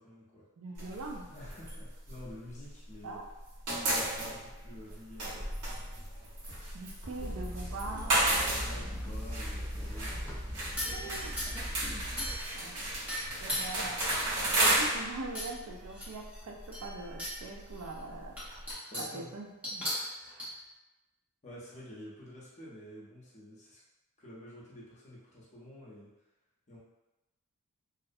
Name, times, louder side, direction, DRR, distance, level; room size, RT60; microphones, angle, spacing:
voice 1, 0.0-0.5 1.3-3.2 3.7-5.6 8.6-11.0 13.2-13.7 18.9-19.3 21.4-23.8 24.2-26.1 26.7-26.8, left 1 dB, 30° left, -6 dB, 0.7 m, -50 dB
voice 2, 0.6-1.3 3.0-3.2 6.7-8.2 10.9-11.4 12.5-12.8 13.4-14.1 14.6-18.4 19.0-19.9 20.3-20.5, right 3 dB, 65° right, 2 dB, 0.4 m, -42 dB
sound 1, 0.8-3.0 3.3-18.7, right 1 dB, 85° right, 1.0 m, -34 dB
sound 2, 7.2-12.3, equal, 10° left, 0.3 m, -39 dB
sound 3, 10.8-11.7 12.2-12.7 13.1-14.6 15.3-15.5 15.9-17.4 17.8-17.9 18.4-19.2 19.6-20.5, equal, 5° right, 0.7 m, -37 dB
2.5 x 2.0 x 2.5 m, 1.0 s
head